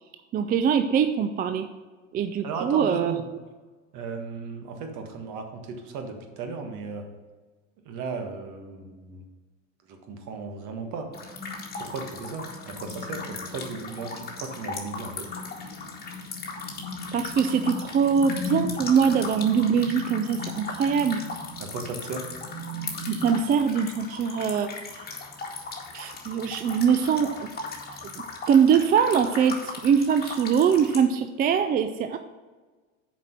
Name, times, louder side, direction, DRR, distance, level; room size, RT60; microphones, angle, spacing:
voice 1, 0.3-1.7 2.1-3.2 17.1-21.2 23.1-24.7 25.9-27.5 28.5-32.2, right 7 dB, 25° right, 9 dB, 0.4 m, -23 dB
voice 2, 2.4-3.2 3.9-7.0 7.8-9.2 9.9-11.1 11.8-15.3 21.6-22.2, right 4 dB, 50° right, 5 dB, 1.6 m, -36 dB
sound 1, 11.1-31.0, left 3 dB, 25° left, 1.9 m, -36 dB
7.3 x 5.2 x 5.9 m, 1.3 s
hypercardioid pair, 90°, 38 cm